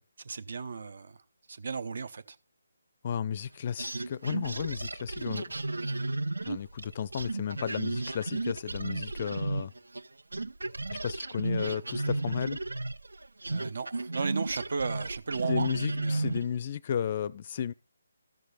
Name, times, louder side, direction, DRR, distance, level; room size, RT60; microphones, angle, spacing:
voice 1, 0.2-1.2 1.5-2.4 13.5-15.7 16.0-16.3, right 5 dB, 60° right, 0.9 m, -35 dB
voice 2, 3.0-5.4 6.4-9.7 10.9-12.6 15.5-17.7, left 8 dB, 40° left, 0.4 m, -33 dB
sound 1, 3.8-10.1 10.3-16.5, right 2 dB, 75° right, 0.5 m, -33 dB
13.5 x 6.5 x 4.2 m
figure-of-eight pair, 150°, 0 cm